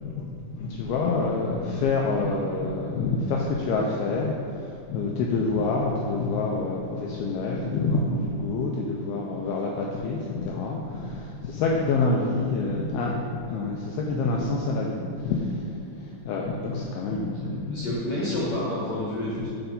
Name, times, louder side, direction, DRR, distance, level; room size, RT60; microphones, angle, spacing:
voice 1, 0.0-17.9, left 3 dB, 85° left, -2 dB, 2.2 m, -27 dB
voice 2, 17.7-19.5, left 1 dB, 65° left, -7 dB, 2.2 m, -29 dB
8.0 x 4.3 x 5.3 m, 2.7 s
omnidirectional pair, 5.0 m